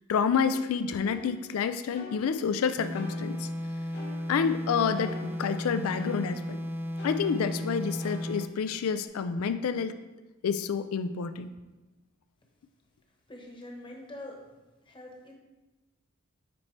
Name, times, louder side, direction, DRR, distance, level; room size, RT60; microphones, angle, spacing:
voice 1, 0.1-3.5 4.3-6.6 7.0-10.0 10.4-11.5, left 6 dB, 70° left, 11 dB, 0.4 m, -28 dB
sound 1, 1.0-2.6 2.9-4.6 4.9-6.6 7.0-9.1, left 2 dB, 50° left, 1.2 m, -48 dB
sound 2, 2.8-8.6, left 1 dB, 10° right, 0.3 m, -34 dB
voice 2, 13.3-14.4 14.8-15.3, left 1 dB, 25° left, 0 dB, 1.1 m, -44 dB
9.6 x 4.2 x 3.2 m, 1.1 s
head